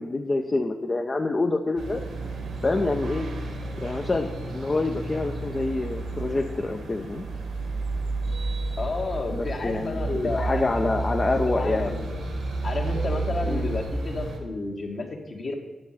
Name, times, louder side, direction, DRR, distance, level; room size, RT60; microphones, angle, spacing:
voice 1, 0.0-2.0 2.6-3.3 3.8-7.2 9.3-11.9 13.5-13.7, left 2 dB, 35° left, 2 dB, 0.7 m, -27 dB
sound 1, 1.8-14.4, right 2 dB, 85° right, 1.8 m, -31 dB
voice 2, 8.8-10.8 11.2-12.2 12.6-15.5, left 3 dB, 50° left, 1 dB, 1.7 m, -31 dB
9.8 x 6.3 x 5.8 m, 1.3 s
cardioid pair, 70°, 0 cm